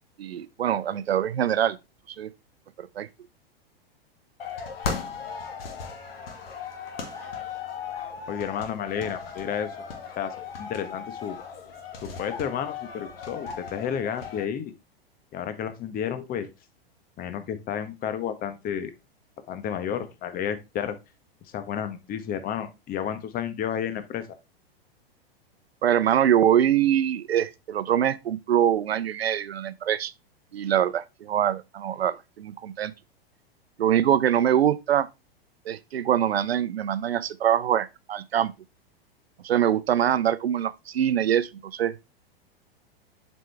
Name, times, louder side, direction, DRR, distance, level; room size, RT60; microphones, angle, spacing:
voice 1, 0.2-1.8 2.1-2.3 2.8-3.1 25.8-30.1 30.5-32.9 33.8-35.1 35.7-38.5 39.4-41.9, right 10 dB, 80° right, 0.7 m, -24 dB
sound 1, 4.4-14.4, left 5 dB, 70° left, 2.0 m, -37 dB
voice 2, 8.3-9.8 10.2-11.4 12.0-14.7 15.3-16.5 17.2-18.9 19.5-21.0 21.5-24.4, left 8 dB, 30° left, 1.1 m, -31 dB
7.5 x 5.3 x 3.3 m
hypercardioid pair, 105°, 30 cm